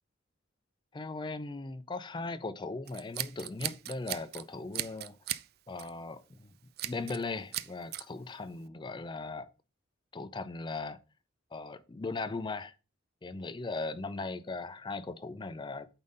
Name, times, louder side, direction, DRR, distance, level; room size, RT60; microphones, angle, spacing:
voice 1, 0.9-5.2 5.7-6.5 6.8-9.5 10.1-11.0 11.5-12.7 13.2-15.9, left 3 dB, 25° left, 0.4 m, -38 dB
Scissors, 2.9-4.4 4.7-5.5 5.8-6.0 6.8-7.2 7.5-8.0, right 14 dB, 50° right, 0.3 m, -37 dB
8.8 x 4.0 x 3.8 m
head